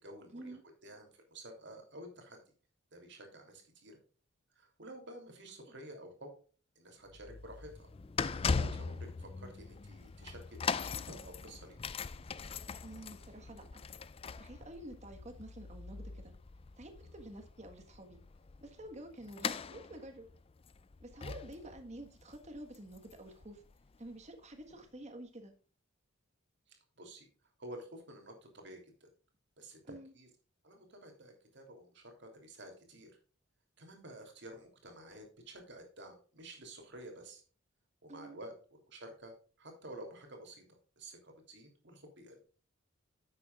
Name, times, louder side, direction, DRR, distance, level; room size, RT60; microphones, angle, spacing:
voice 1, 0.0-0.6 0.8-2.4 2.9-4.0 4.5-6.3 6.7-7.9 8.3-11.9 17.0-17.1 21.6-21.7 26.7-27.3 27.6-29.1 29.6-30.3 30.6-33.1 33.8-37.4 38.0-38.5 38.9-42.4, right 1 dB, 60° right, 3 dB, 3.0 m, -51 dB
sound 1, 7.1-24.1 24.7-24.8, left 5 dB, 30° left, 0.4 m, -40 dB
voice 2, 12.8-13.8 14.4-16.3 16.8-18.2 18.6-20.3 21.0-23.6 24.0-25.5 29.8-30.1 38.1-38.4, right 1 dB, 35° right, 5 dB, 1.5 m, -49 dB
10.5 x 8.3 x 2.4 m, 0.39 s
head